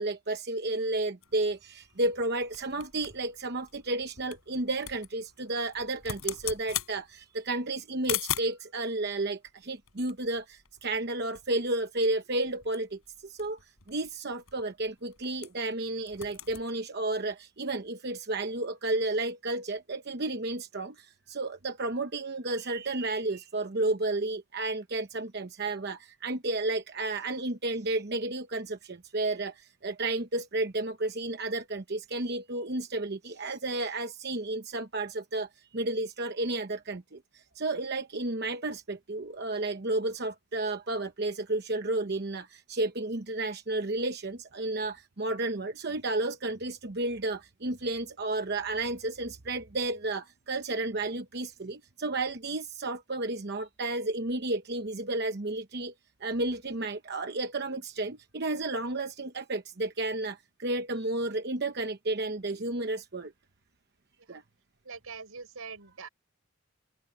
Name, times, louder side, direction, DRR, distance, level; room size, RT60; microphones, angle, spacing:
voice 1, 0.0-55.9 56.2-63.3 64.3-64.4, right 2 dB, 50° right, 0.9 m, -32 dB
sound 1, 1.2-8.7 9.5-11.1 11.3-11.5 11.7-12.0 12.4-15.7 16.0-16.7, left 11 dB, 75° left, 5.3 m, -40 dB
voice 2, 64.8-66.1, right 5 dB, 80° right, 5.0 m, -43 dB
open air
head